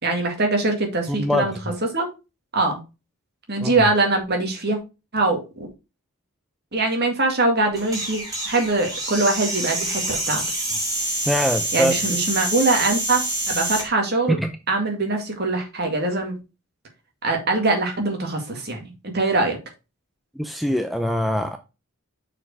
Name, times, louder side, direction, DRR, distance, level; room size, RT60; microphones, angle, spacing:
voice 1, 0.0-1.5 1.9-2.1 2.5-2.8 3.5-4.8 5.1-5.7 6.7-10.4 11.7-14.4 14.7-16.3 17.2-19.6, right 2 dB, 45° right, 2.0 m, -22 dB
voice 2, 1.1-1.8 3.6-3.8 11.2-11.9 14.3-14.5 20.4-21.6, equal, ahead, 0.5 m, -23 dB
sound 1, 7.7-13.9, right 1 dB, 15° right, 2.7 m, -27 dB
6.3 x 4.7 x 4.7 m
head